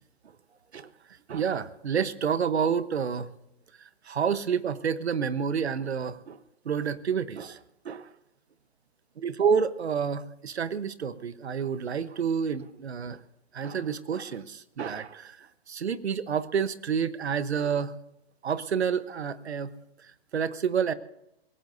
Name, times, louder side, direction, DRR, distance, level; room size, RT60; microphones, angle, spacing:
voice 1, 1.3-3.3 3.8-6.4 6.6-7.6 7.8-8.1 9.2-13.2 13.5-17.9 18.4-19.7 20.0-20.9, right 7 dB, 90° right, 14 dB, 1.0 m, -29 dB
22.5 x 17.5 x 2.7 m, 0.83 s
hypercardioid pair, 145°, 32 cm